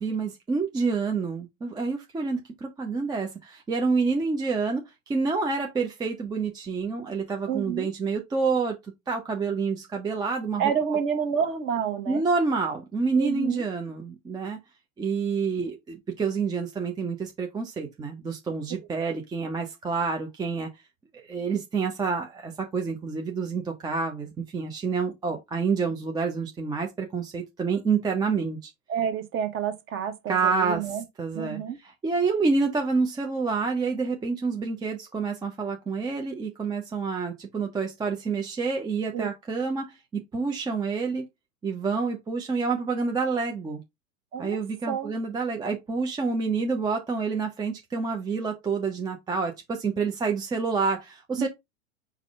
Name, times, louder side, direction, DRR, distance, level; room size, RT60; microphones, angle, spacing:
voice 1, 0.0-8.8 9.1-10.7 12.1-14.6 15.0-20.7 21.2-28.7 30.3-41.2 41.6-43.8 44.4-51.5, right 4 dB, 10° right, 0.5 m, -28 dB
voice 2, 7.5-7.9 10.6-12.2 13.1-13.6 28.9-31.0 31.3-31.8 39.1-39.3 44.3-44.6 44.9-45.1 51.4-51.5, right 8 dB, 30° right, 1.0 m, -29 dB
4.8 x 2.2 x 4.7 m
figure-of-eight pair, 95°, 41 cm